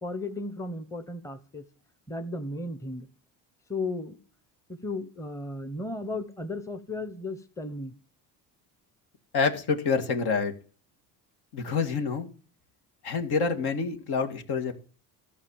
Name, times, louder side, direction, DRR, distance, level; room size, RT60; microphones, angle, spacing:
voice 1, 0.0-1.6 2.1-3.1 3.7-4.2 4.7-7.9, left 2 dB, 5° left, 10 dB, 0.9 m, -35 dB
voice 2, 9.3-10.5 11.5-12.3 13.0-14.8, left 5 dB, 65° left, 6 dB, 2.0 m, -27 dB
13.5 x 5.4 x 7.1 m, 0.39 s
supercardioid pair, 95°, 41 cm